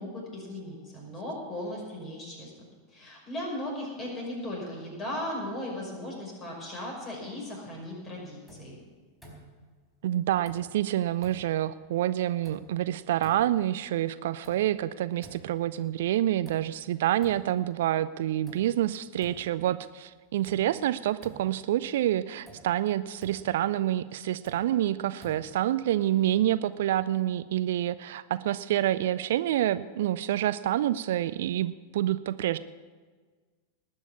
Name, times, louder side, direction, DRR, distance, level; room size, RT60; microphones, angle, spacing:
voice 1, 0.0-2.5 2.9-8.8, left 1 dB, 25° left, -1 dB, 5.8 m, -37 dB
sound 1, 8.5-8.8 9.2-9.7 10.4-10.9 11.2-11.7 12.4-12.9 13.2-13.7 14.4-14.9 15.2-15.8 16.4-16.9 17.2-17.7 18.5-18.8 19.2-19.7 20.4-20.8 21.2-21.7 22.5-22.8 23.2-23.6 24.4-24.8 25.2-25.7, right 1 dB, ahead, 4.2 m, -51 dB
voice 2, 10.0-32.6, right 12 dB, 55° right, 15 dB, 0.4 m, -27 dB
19.0 x 6.4 x 8.3 m, 1.5 s
figure-of-eight pair, 90°, 0 cm